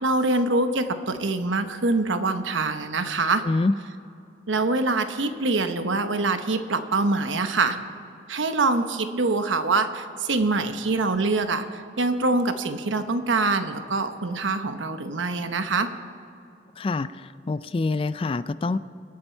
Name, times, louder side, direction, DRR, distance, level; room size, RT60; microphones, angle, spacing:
voice 1, 0.0-3.4 4.5-7.8 8.3-15.9, right 3 dB, 85° right, 9 dB, 1.0 m, -24 dB
voice 2, 16.8-17.1 17.5-18.8, left 3 dB, 30° left, 15 dB, 0.3 m, -25 dB
25.0 x 8.8 x 4.5 m, 2.6 s
head